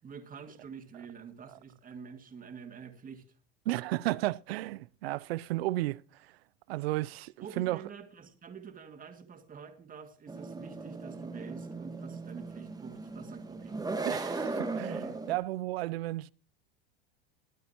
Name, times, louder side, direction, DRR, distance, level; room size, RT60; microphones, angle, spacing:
voice 1, 0.0-3.2 7.4-13.8, right 6 dB, 25° right, 2.1 m, -47 dB
voice 2, 3.7-6.3 6.7-7.8 14.1-16.3, right 17 dB, 80° right, 0.5 m, -33 dB
sound 1, 10.3-15.4, right 3 dB, 10° right, 1.6 m, -37 dB
22.0 x 9.1 x 2.9 m
hypercardioid pair, 95°, 30 cm